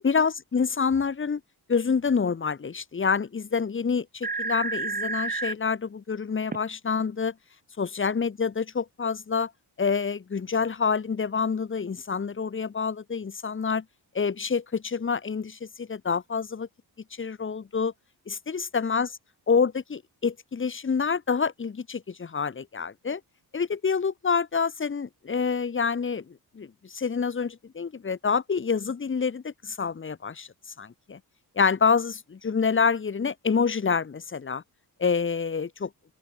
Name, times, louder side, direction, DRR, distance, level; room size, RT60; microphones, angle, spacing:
voice 1, 0.0-1.4 1.7-7.3 7.8-9.5 9.8-13.8 14.1-16.7 17.2-17.9 18.3-19.2 19.5-23.2 23.5-30.5 30.8-31.2 31.6-34.6 35.0-35.9, left 5 dB, 30° left, 1.8 m, -27 dB
sound 1, 3.9-4.0 4.2-5.5 6.5-6.6, right 4 dB, 25° right, 2.8 m, -30 dB
open air
wide cardioid pair, 145°, 39 cm